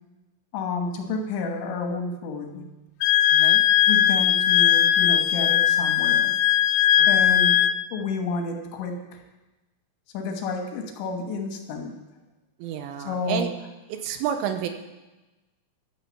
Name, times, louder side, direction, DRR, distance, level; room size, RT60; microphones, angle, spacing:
voice 1, 0.5-2.7 3.9-6.4 7.1-9.2 10.1-11.9 13.0-13.5, left 3 dB, 70° left, 3 dB, 3.2 m, -30 dB
Wind instrument woodwind instrument, 3.0-7.8, left 12 dB, 90° left, 3.4 m, -19 dB
voice 2, 3.3-3.6 7.0-7.2 12.6-13.5 13.9-14.7, right 9 dB, 80° right, 7 dB, 3.2 m, -30 dB
11.5 x 10.5 x 7.0 m, 1.1 s
omnidirectional pair, 5.9 m